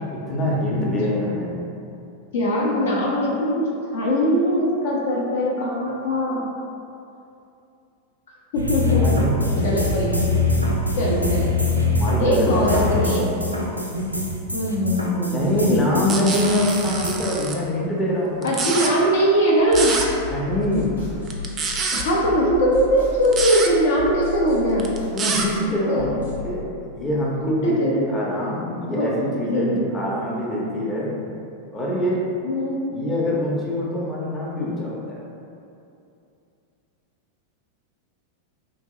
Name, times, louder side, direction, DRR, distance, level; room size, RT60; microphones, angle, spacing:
voice 1, 0.0-1.6 8.9-9.9 12.0-13.2 15.3-18.6 20.3-21.0 25.1-26.6 26.9-31.1 31.7-32.2 32.9-35.2, left 1 dB, 20° left, -5 dB, 0.7 m, -24 dB
voice 2, 2.3-6.5 8.5-10.2 11.0-11.6 12.2-13.2 14.5-16.2 18.4-19.9 21.9-24.9 25.9-26.1 27.4-28.2 28.9-29.1 29.4-29.8 32.4-32.8, equal, 60° left, -4 dB, 0.6 m, -21 dB
sound 1, 8.5-17.1, left 2 dB, 90° right, 0.4 m, -23 dB
sound 2, 16.1-17.5 18.4-18.9 19.7-20.1 21.3-22.0 23.2-23.7 24.8-25.5, right 4 dB, 25° right, 0.4 m, -26 dB
sound 3, 19.6-26.5, left 4 dB, 85° left, 1.1 m, -35 dB
2.9 x 2.7 x 3.7 m, 2.6 s
figure-of-eight pair, 90°, 0 cm